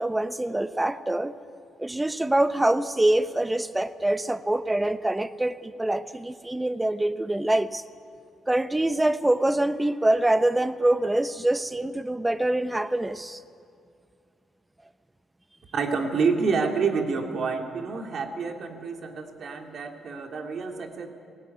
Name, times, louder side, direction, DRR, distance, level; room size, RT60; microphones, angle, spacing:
voice 1, 0.0-1.3 1.8-7.8 8.5-13.4, right 1 dB, 10° right, 13 dB, 0.8 m, -25 dB
voice 2, 15.7-21.1, right 5 dB, 55° right, 4 dB, 2.5 m, -28 dB
18.0 x 17.0 x 9.4 m, 2.3 s
cardioid pair, 90°, 0 cm